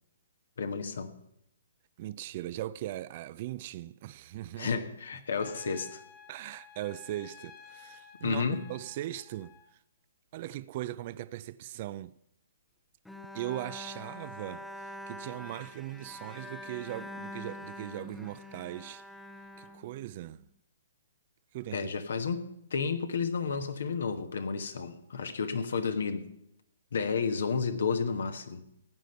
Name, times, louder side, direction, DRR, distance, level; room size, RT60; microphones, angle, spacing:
voice 1, 0.6-1.2 4.6-6.0 8.2-8.6 21.7-26.3 26.9-28.6, left 5 dB, 70° left, 1.3 m, -31 dB
voice 2, 2.0-4.8 6.3-9.8 10.3-12.1 13.3-19.0 19.6-20.4 21.5-21.9, right 14 dB, 40° right, 0.4 m, -39 dB
Trumpet, 5.3-9.7, left 7 dB, 30° left, 1.3 m, -53 dB
Bowed string instrument, 13.1-20.4, left 1 dB, 5° left, 0.7 m, -45 dB
15.0 x 9.2 x 5.6 m
figure-of-eight pair, 130°, 0 cm